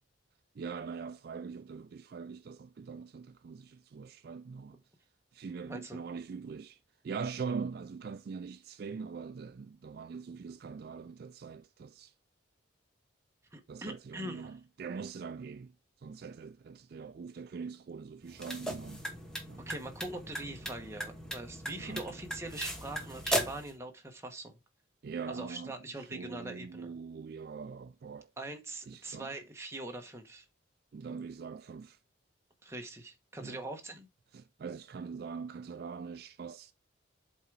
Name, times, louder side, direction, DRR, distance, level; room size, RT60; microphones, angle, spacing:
voice 1, 0.6-4.8 5.3-6.8 7.0-12.1 13.7-15.7 16.0-19.1 19.5-19.6 21.8-22.1 25.0-28.3 28.9-29.3 30.9-32.0 33.4-33.6 34.3-36.7, right 5 dB, 50° right, 0.3 m, -42 dB
voice 2, 5.7-6.0 13.5-14.5 19.6-24.6 25.3-26.9 28.4-30.5 32.6-34.1, right 2 dB, 15° right, 1.1 m, -42 dB
sound 1, 18.2-23.7, equal, 5° left, 1.2 m, -37 dB
8.0 x 3.8 x 4.7 m
head